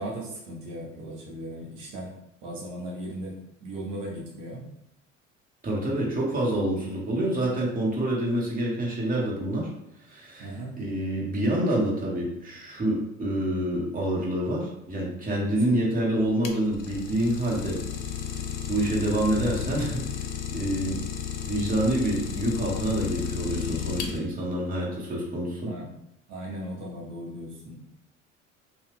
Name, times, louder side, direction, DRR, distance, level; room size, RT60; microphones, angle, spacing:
voice 1, 0.0-2.1 2.4-3.3 3.6-4.6 10.4-10.8 15.4-15.8 25.7-25.9 26.3-27.8, right 1 dB, 80° right, -3 dB, 0.9 m, -37 dB
voice 2, 5.6-9.7 10.0-17.8 18.7-20.2 20.5-21.0 21.4-25.7, right 1 dB, 20° right, -4 dB, 1.3 m, -27 dB
Idling, 16.2-24.5, left 8 dB, 65° left, 0.6 m, -33 dB
2.7 x 2.3 x 3.5 m, 0.80 s
hypercardioid pair, 60°, 38 cm